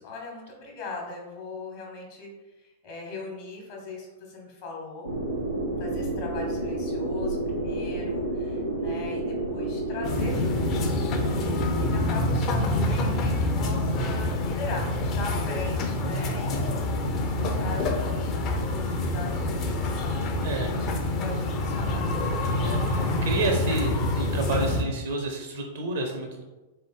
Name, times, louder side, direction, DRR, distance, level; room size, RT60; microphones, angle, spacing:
voice 1, 0.0-5.1 5.8-11.5 11.9-16.6 17.2-18.4 18.7-20.2 20.7-20.9 21.2-22.1, left 3 dB, 50° left, -1 dB, 1.2 m, -39 dB
sound 1, 5.0-11.9, right 1 dB, 90° right, 0.9 m, -30 dB
sound 2, 10.0-24.8, left 1 dB, 35° left, 0.5 m, -27 dB
voice 2, 20.4-20.7 22.4-26.4, right 2 dB, 60° right, 3 dB, 0.6 m, -30 dB
3.6 x 3.3 x 3.7 m, 1.1 s
figure-of-eight pair, 95°, 0 cm